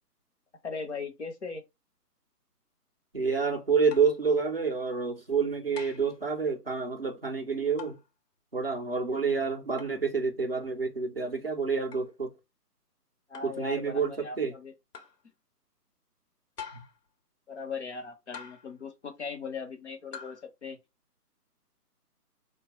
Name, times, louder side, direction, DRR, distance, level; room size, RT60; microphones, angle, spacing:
voice 1, 0.6-1.6 13.3-14.7 17.5-20.8, left 4 dB, 45° left, 0.8 m, -39 dB
voice 2, 3.1-8.0 8.5-12.3 13.4-14.5 16.7-16.8, right 5 dB, 40° right, 0.4 m, -28 dB
sound 1, 3.9-4.2 5.8-6.2 7.8-8.1 9.8-10.0 11.9-12.1 13.3-13.6 14.9-15.2 16.6-17.0 18.3-18.8 20.1-20.4, left 6 dB, 80° left, 1.1 m, -45 dB
4.3 x 2.3 x 2.9 m
hypercardioid pair, 175°, 48 cm